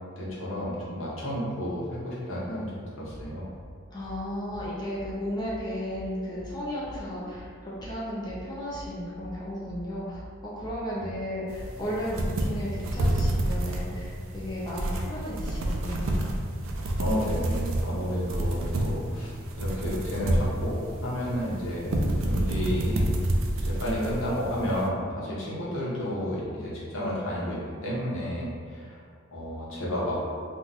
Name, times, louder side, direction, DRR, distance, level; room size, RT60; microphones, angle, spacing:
voice 1, 0.2-2.7 3.0-3.5 11.0-11.1 17.0-19.3 19.6-21.9 22.2-23.1 23.6-29.0 29.3-30.2, equal, 70° left, -6 dB, 1.0 m, -31 dB
sound 1, 3.1-17.9, equal, 5° right, 1.0 m, -44 dB
voice 2, 3.9-16.2, equal, 20° left, -7 dB, 0.5 m, -34 dB
sound 2, 11.5-24.9, right 1 dB, 75° right, 0.4 m, -29 dB
2.8 x 2.3 x 3.9 m, 2.2 s
head